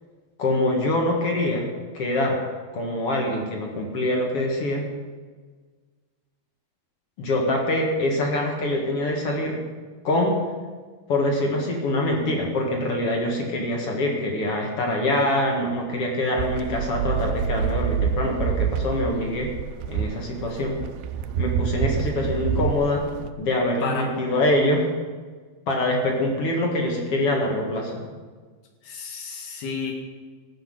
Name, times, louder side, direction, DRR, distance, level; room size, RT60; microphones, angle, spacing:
voice 1, 0.4-1.7 1.9-2.4 2.7-4.8 7.2-9.6 10.0-10.4 11.1-19.5 19.9-20.8 21.4-23.0 23.4-24.9 25.7-28.0, left 1 dB, 45° left, 0 dB, 2.2 m, -24 dB
sound 1, 16.4-23.3, right 8 dB, 80° right, 2.2 m, -27 dB
voice 2, 23.8-24.1 28.8-29.9, left 5 dB, 75° left, 2 dB, 3.9 m, -31 dB
14.5 x 6.5 x 7.7 m, 1.5 s
omnidirectional pair, 4.5 m